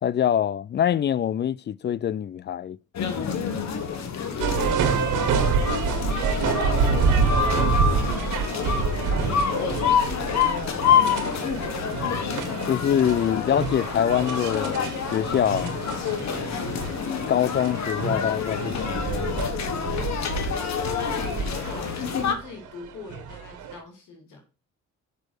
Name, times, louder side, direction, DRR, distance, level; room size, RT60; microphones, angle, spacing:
voice 1, 0.0-2.8 12.7-15.7 17.3-19.3, left 9 dB, 35° left, 0.4 m, -24 dB
sound 1, 2.9-22.3, left 7 dB, 65° left, 1.7 m, -27 dB
voice 2, 4.2-5.7 6.4-11.7 20.9-24.4, left 5 dB, 80° left, 2.9 m, -41 dB
sound 2, 4.4-23.8, right 6 dB, 85° right, 1.6 m, -28 dB
6.8 x 6.0 x 6.4 m
cardioid pair, 90°, 30 cm